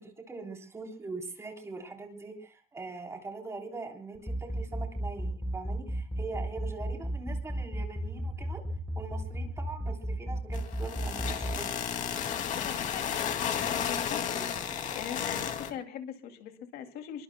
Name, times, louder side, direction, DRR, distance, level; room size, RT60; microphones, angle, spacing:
voice 1, 0.0-8.6 9.0-11.7, right 3 dB, 15° right, 2 dB, 3.6 m, -42 dB
sound 1, 4.1-11.5, equal, 5° left, 4.0 m, -33 dB
sound 2, 10.5-15.7, left 8 dB, 50° left, 2.4 m, -33 dB
voice 2, 12.5-14.5 14.9-17.2, left 9 dB, 75° left, 6 dB, 2.6 m, -42 dB
27.5 x 23.0 x 2.2 m, 0.37 s
cardioid pair, 170°, 16 cm